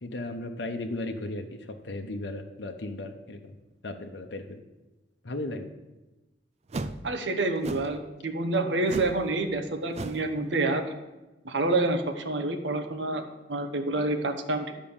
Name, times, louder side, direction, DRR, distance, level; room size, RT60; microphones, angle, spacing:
voice 1, 0.0-3.6 3.8-4.6 5.2-5.7, left 2 dB, 65° left, 4 dB, 0.9 m, -36 dB
sound 1, 6.7-7.0 7.6-8.0 8.9-9.2 9.5-9.6 9.9-10.3, right 2 dB, 35° right, 0.5 m, -35 dB
voice 2, 7.0-10.8 11.4-13.2 13.5-14.8, right 2 dB, 75° right, 6 dB, 1.0 m, -28 dB
10.5 x 5.0 x 7.2 m, 1.1 s
head